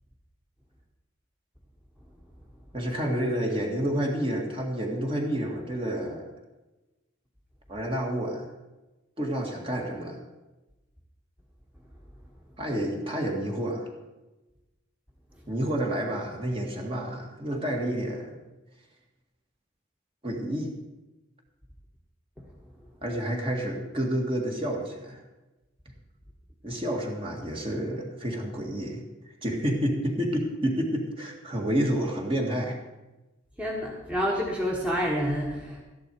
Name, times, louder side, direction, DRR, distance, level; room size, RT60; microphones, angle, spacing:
voice 1, 2.7-6.3 7.7-8.5 9.2-10.2 12.6-13.9 15.5-18.4 20.2-20.7 23.0-25.2 26.6-29.0 29.4-32.8, right 1 dB, 30° right, 0 dB, 1.9 m, -29 dB
voice 2, 33.6-35.8, equal, 5° right, -3 dB, 1.5 m, -28 dB
13.0 x 11.0 x 4.7 m, 1.1 s
head